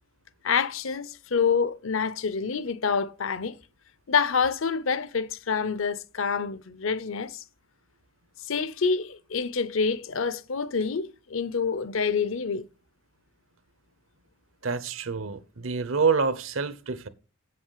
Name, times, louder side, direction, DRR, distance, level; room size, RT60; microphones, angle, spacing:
voice 1, 0.4-3.6 4.1-7.4 8.5-12.7, left 5 dB, 70° left, 0.7 m, -27 dB
voice 2, 14.6-17.1, right 5 dB, 75° right, 0.9 m, -27 dB
8.1 x 7.8 x 5.6 m
head